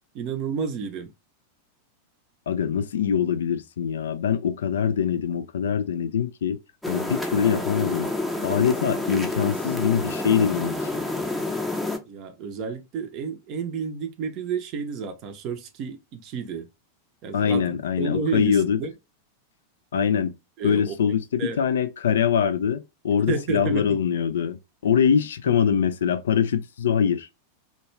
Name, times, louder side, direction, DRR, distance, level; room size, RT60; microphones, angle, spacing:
voice 1, 0.1-1.1 12.1-16.7 17.2-18.9 20.6-21.6 23.3-24.0, right 5 dB, 40° right, 0.6 m, -31 dB
voice 2, 2.5-6.6 6.9-8.1 8.4-11.0 17.3-18.8 19.9-20.3 20.6-27.3, left 7 dB, 65° left, 0.3 m, -23 dB
sound 1, 6.8-12.0, left 2 dB, ahead, 0.6 m, -29 dB
2.3 x 2.2 x 3.1 m
figure-of-eight pair, 90°, 0 cm